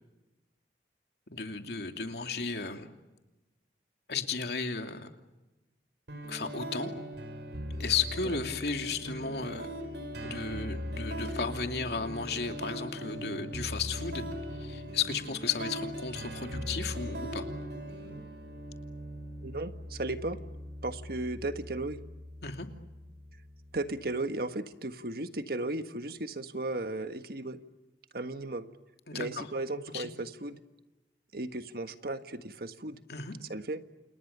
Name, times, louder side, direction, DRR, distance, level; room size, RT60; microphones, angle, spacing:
voice 1, 1.3-2.9 4.1-5.1 6.3-6.9 7.8-9.7 10.2-14.2 14.5-17.4 22.4-22.7 29.1-29.5 29.9-30.1 33.1-33.3, left 5 dB, 65° left, 5 dB, 2.7 m, -34 dB
sound 1, 6.1-24.0, equal, 75° right, 5.7 m, -40 dB
voice 2, 19.4-20.4 20.8-22.0 23.7-27.6 28.1-28.7 29.1-30.6 31.3-33.0 33.5-33.8, right 2 dB, 60° right, 9 dB, 1.5 m, -35 dB
29.5 x 29.0 x 6.8 m, 1.1 s
head